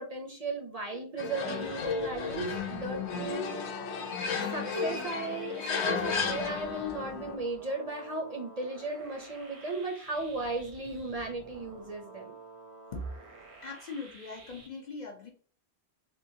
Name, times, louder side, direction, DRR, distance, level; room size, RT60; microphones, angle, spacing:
voice 1, 0.0-3.7 4.5-12.3, right 2 dB, 45° right, 0 dB, 0.6 m, -36 dB
sound 1, 1.2-7.4, left 5 dB, 85° left, 0.9 m, -33 dB
sound 2, 1.4-14.7, right 3 dB, 80° right, 1.0 m, -51 dB
voice 2, 13.6-15.3, left 3 dB, 50° left, 1 dB, 0.6 m, -40 dB
3.7 x 2.3 x 2.6 m, 0.43 s
omnidirectional pair, 1.1 m